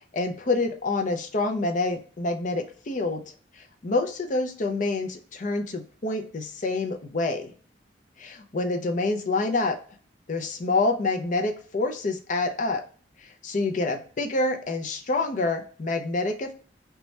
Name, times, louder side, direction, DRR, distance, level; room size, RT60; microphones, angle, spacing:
voice 1, 0.1-3.2 3.8-7.5 8.2-9.8 10.3-12.8 13.4-16.5, left 3 dB, 45° left, 5 dB, 0.5 m, -27 dB
3.1 x 2.2 x 4.1 m, 0.42 s
head